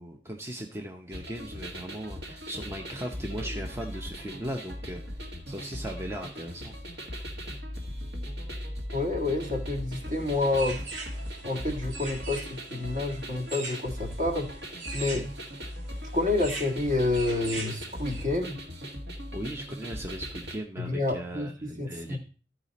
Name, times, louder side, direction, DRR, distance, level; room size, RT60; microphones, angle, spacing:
voice 1, 0.0-5.1 5.5-7.0 19.3-22.2, right 1 dB, 15° right, 2 dB, 0.7 m, -38 dB
sound 1, 1.1-20.6, equal, 65° right, 1.7 m, -39 dB
voice 2, 8.9-10.8 11.4-14.6 14.9-15.3 16.1-18.6 20.8-22.2, left 2 dB, 45° right, 1 dB, 1.7 m, -29 dB
sound 2, 10.0-18.3, right 3 dB, 80° right, 2.2 m, -42 dB
13.5 x 4.9 x 4.1 m, 0.37 s
head